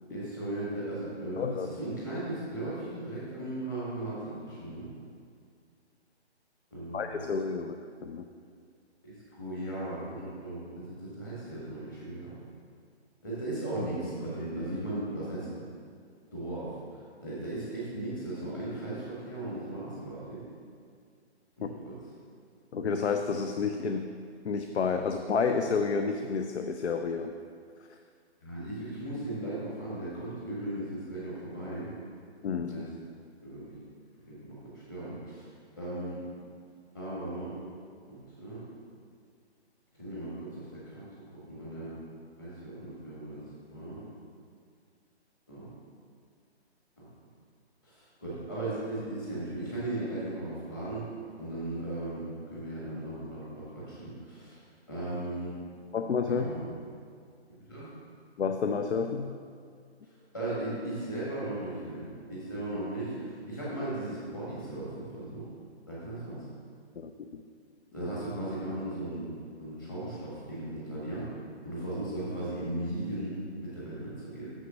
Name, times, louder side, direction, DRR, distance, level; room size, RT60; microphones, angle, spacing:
voice 1, 0.1-4.9 6.7-7.2 9.0-12.4 13.2-15.5 16.3-16.8 17.2-20.4 21.6-21.9 28.4-31.9 32.7-32.9 33.4-33.8 34.2-35.5 35.8-36.2 36.9-37.6 38.1-38.6 40.0-41.1 41.3-41.9 42.4-43.4 43.7-44.0 45.5-45.7 47.0-47.1 47.8-51.1 51.4-54.6 54.9-55.5 56.3-56.7 57.7-57.9 60.3-65.4 65.9-66.4 67.9-69.3 69.6-71.3 71.6-74.5, right 1 dB, 20° left, -9 dB, 1.5 m, -37 dB
voice 2, 1.4-1.7 6.9-7.7 8.0-8.3 21.6-21.7 22.7-24.1 24.4-27.3 32.4-32.8 55.9-56.5 58.4-59.4 67.0-67.4 68.0-68.1, left 5 dB, 75° left, 6 dB, 0.6 m, -30 dB
6.5 x 6.3 x 6.0 m, 2.2 s
hypercardioid pair, 175°, 34 cm